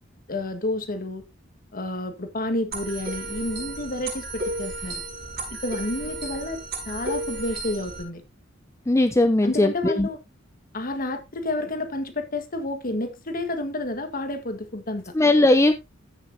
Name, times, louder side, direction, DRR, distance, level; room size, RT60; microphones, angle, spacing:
voice 1, 0.3-1.2 1.7-5.0 5.6-6.6 6.8-8.2 9.4-10.2 10.7-15.1, left 2 dB, 45° left, 1.6 m, -30 dB
sound 1, 2.7-8.0, right 2 dB, 55° right, 5.2 m, -33 dB
voice 2, 8.9-10.1 15.1-15.7, left 2 dB, 15° left, 0.5 m, -19 dB
14.5 x 6.4 x 2.7 m
head